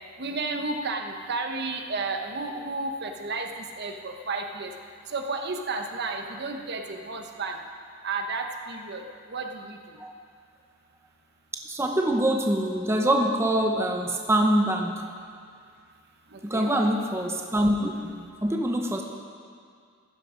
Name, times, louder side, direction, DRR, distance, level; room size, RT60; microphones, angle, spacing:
voice 1, 0.2-4.7 5.1-7.6 8.0-9.0 9.3-10.0 16.3-16.8, right 3 dB, 55° right, 4 dB, 1.1 m, -32 dB
voice 2, 11.5-15.1 16.4-19.0, right 1 dB, 15° right, 2 dB, 0.8 m, -25 dB
14.5 x 12.0 x 5.1 m, 2.2 s
head